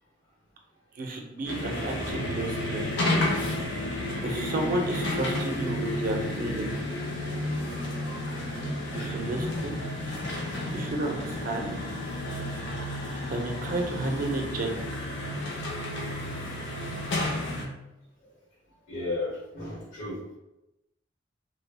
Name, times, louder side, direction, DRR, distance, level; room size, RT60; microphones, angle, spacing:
voice 1, 1.0-2.9 4.2-6.7 8.9-9.8 10.7-11.8 13.3-14.7, right 2 dB, 45° right, 2 dB, 0.4 m, -32 dB
sound 1, 1.5-17.7, left 1 dB, 65° left, 0.5 m, -31 dB
voice 2, 18.9-20.2, left 2 dB, 90° left, -4 dB, 1.0 m, -34 dB
2.1 x 2.0 x 3.1 m, 0.93 s
head